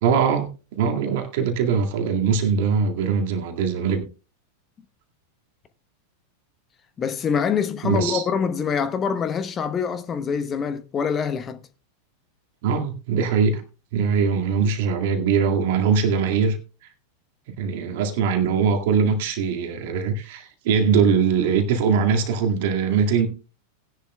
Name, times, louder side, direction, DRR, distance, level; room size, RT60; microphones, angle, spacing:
voice 1, 0.0-4.0 7.8-8.2 12.6-13.6 13.9-16.6 17.6-23.3, right 6 dB, 50° right, 2.0 m, -21 dB
voice 2, 7.0-11.6, left 6 dB, 25° left, 0.9 m, -25 dB
18.0 x 10.5 x 2.2 m
figure-of-eight pair, 90°, 0 cm